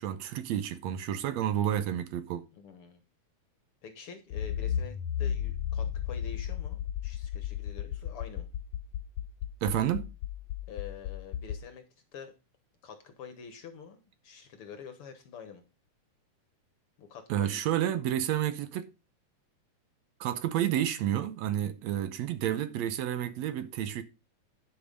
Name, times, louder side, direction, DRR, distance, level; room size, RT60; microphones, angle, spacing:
voice 1, 0.0-2.4 9.6-10.1 17.3-18.9 20.2-24.0, right 11 dB, 75° right, 1.9 m, -30 dB
voice 2, 2.5-3.0 3.8-8.5 10.7-11.8 12.1-12.3 12.8-15.6 17.0-17.6, left 6 dB, 60° left, 1.7 m, -47 dB
Accelerating revving vroom, 4.3-11.6, left 9 dB, 80° left, 1.7 m, -34 dB
11.0 x 5.2 x 5.1 m
omnidirectional pair, 3.4 m